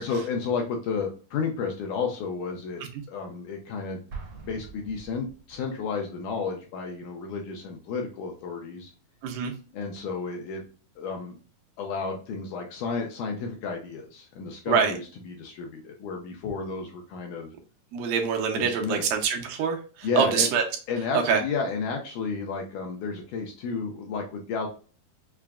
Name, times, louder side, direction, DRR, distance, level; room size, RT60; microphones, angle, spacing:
voice 1, 0.0-2.8 3.1-4.1 4.4-8.9 9.7-10.6 11.0-11.4 11.8-17.5 18.5-19.1 20.0-20.5 20.9-24.7, left 5 dB, 80° left, 1 dB, 1.9 m, -32 dB
Explosion, 4.1-5.8, right 5 dB, 65° right, 1.4 m, -43 dB
voice 2, 9.2-9.5 14.7-14.9 17.9-20.6 21.1-21.4, right 6 dB, 80° right, 3 dB, 2.2 m, -25 dB
5.9 x 2.2 x 2.2 m, 0.37 s
omnidirectional pair, 4.1 m